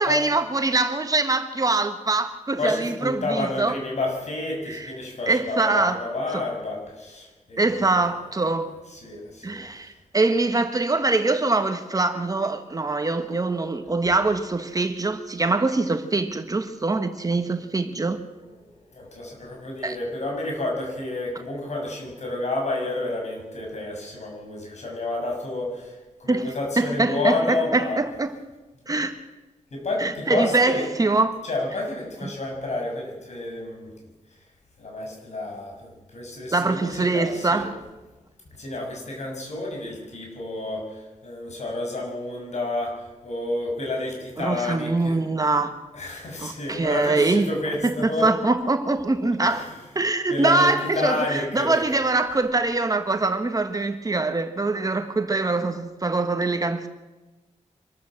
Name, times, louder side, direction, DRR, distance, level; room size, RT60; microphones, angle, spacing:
voice 1, 0.0-3.8 4.7-4.9 5.3-6.0 6.3-6.4 7.6-8.7 9.4-18.2 19.8-20.0 26.3-28.3 28.9-29.1 30.0-31.4 36.5-37.8 44.4-45.8 46.4-47.5 47.8-49.7 49.9-56.9, right 3 dB, 30° right, 1.5 m, -23 dB
voice 2, 2.6-8.1 8.9-9.6 18.4-28.0 29.7-30.9 31.4-34.4 34.8-37.7 38.6-45.2 45.9-48.3 49.4-49.8 50.3-51.8, left 2 dB, 65° left, 7.1 m, -30 dB
25.5 x 13.5 x 7.8 m
wide cardioid pair, 120°, 13 cm